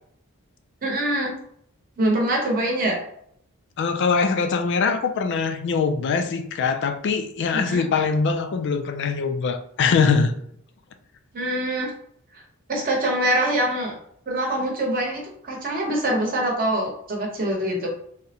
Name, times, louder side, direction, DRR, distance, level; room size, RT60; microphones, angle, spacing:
voice 1, 0.8-1.3 2.0-3.0 7.5-7.8 11.3-11.9 12.7-14.0 14.3-17.9, right 1 dB, 40° right, -1 dB, 0.8 m, -24 dB
voice 2, 3.8-10.3, left 5 dB, 55° left, 7 dB, 0.3 m, -22 dB
3.6 x 2.1 x 2.8 m, 0.69 s
head